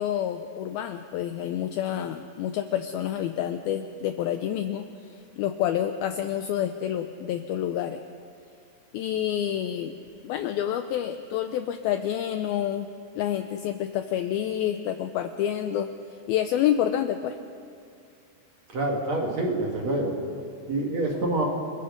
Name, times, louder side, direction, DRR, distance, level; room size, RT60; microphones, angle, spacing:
voice 1, 0.0-8.0 8.9-9.9 10.2-12.9 13.2-15.9 16.3-17.4, left 10 dB, 85° left, 8 dB, 2.1 m, -28 dB
voice 2, 18.7-20.1 20.7-21.4, right 2 dB, 45° right, 0 dB, 2.8 m, -26 dB
29.5 x 21.0 x 5.2 m, 2.3 s
omnidirectional pair, 5.1 m